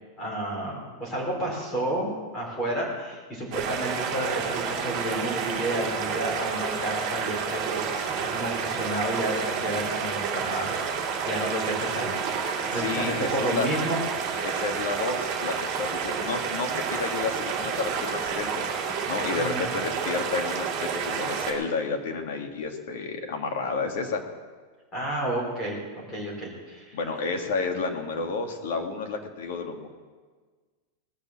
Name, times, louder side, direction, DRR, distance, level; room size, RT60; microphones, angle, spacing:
voice 1, 0.2-14.0 19.3-19.7 24.9-27.0, right 1 dB, 15° left, -3 dB, 4.3 m, -31 dB
sound 1, 3.5-21.5, right 6 dB, 30° right, 2.6 m, -30 dB
voice 2, 12.7-13.7 14.4-18.6 19.1-24.2 26.9-29.9, left 4 dB, 55° left, 4 dB, 2.0 m, -31 dB
19.5 x 6.7 x 7.4 m, 1.4 s
supercardioid pair, 180°, 0 cm